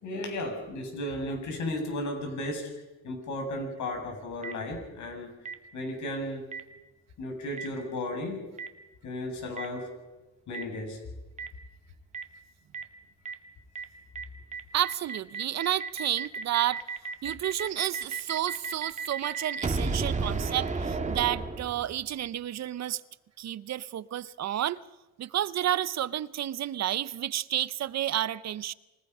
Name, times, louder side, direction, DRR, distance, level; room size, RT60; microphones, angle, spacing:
voice 1, 0.0-2.7 3.0-5.3 5.7-6.5 7.2-8.4 9.0-9.9 10.5-11.0, left 1 dB, 70° left, 7.4 m, -34 dB
Boom, 4.4-4.5 5.4-5.5 6.5-6.6 7.6-7.7 8.6-8.7 9.6-9.7 10.5-10.6 11.4-11.5 12.1-12.2 12.7-12.8 13.2-13.3 13.7-13.8 14.1-14.2 14.5-22.1, right 4 dB, 25° right, 2.3 m, -33 dB
voice 2, 14.7-16.8 17.2-23.0 23.4-24.8 25.2-28.7, right 12 dB, 60° right, 0.8 m, -30 dB
28.0 x 18.0 x 5.6 m
cardioid pair, 90°, 30 cm